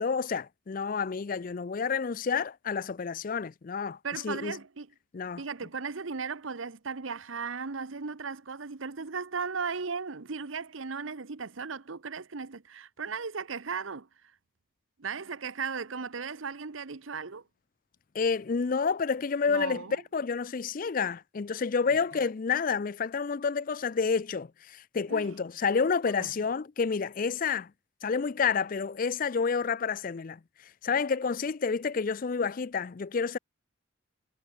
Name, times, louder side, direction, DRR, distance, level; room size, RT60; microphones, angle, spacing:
voice 1, 0.0-4.0 4.2-4.6 5.1-5.4 18.1-27.7 28.0-30.4 30.8-33.4, left 5 dB, 45° left, 0.4 m, -29 dB
voice 2, 4.0-4.9 5.4-14.1 15.0-17.4 19.5-20.0 21.9-22.0 25.1-25.3 26.2-26.3, right 5 dB, 80° right, 1.0 m, -36 dB
head